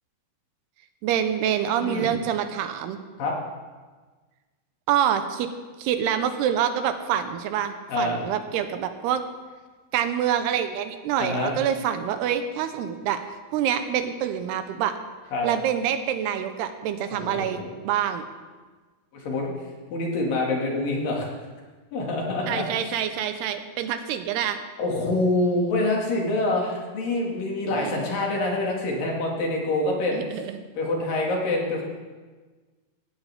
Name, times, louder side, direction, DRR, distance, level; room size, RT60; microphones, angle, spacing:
voice 1, 1.0-3.0 4.9-5.5 5.8-9.2 9.9-13.2 13.5-15.0 15.4-18.3 22.5-24.6 27.6-28.1 30.1-30.6, right 9 dB, 90° right, 8 dB, 2.9 m, -26 dB
voice 2, 7.9-8.2 11.2-11.6 15.3-15.5 17.1-17.7 19.1-19.5 19.9-21.3 21.9-23.0 24.8-30.2 30.7-31.8, left 2 dB, 60° left, -1 dB, 3.7 m, -26 dB
16.5 x 16.0 x 3.5 m, 1.4 s
omnidirectional pair, 4.6 m